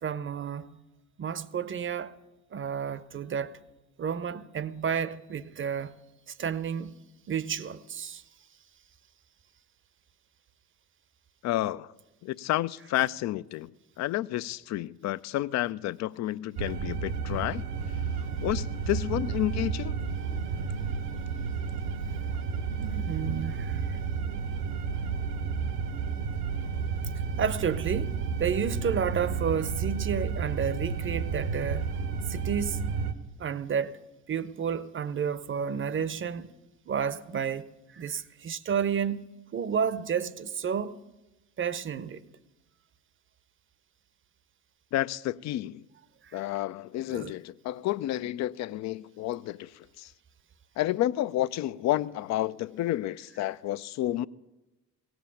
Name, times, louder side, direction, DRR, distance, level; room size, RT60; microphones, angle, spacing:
voice 1, 0.0-0.8 1.2-2.1 2.5-3.5 4.0-5.9 6.3-6.9 7.3-8.2 22.8-24.0 27.4-31.9 32.3-32.9 33.4-34.0 34.3-36.5 36.9-37.7 37.9-39.2 39.5-41.0 41.6-42.2 47.1-47.3, right 7 dB, 25° right, 0.7 m, -31 dB
voice 2, 11.4-11.9 12.2-13.7 14.0-17.6 18.4-20.0 44.9-45.9 46.3-50.1 50.8-54.3, left 14 dB, 40° left, 0.4 m, -30 dB
sound 1, 16.6-33.1, right 6 dB, 75° right, 1.2 m, -31 dB
17.5 x 7.9 x 7.0 m
hypercardioid pair, 60°, 46 cm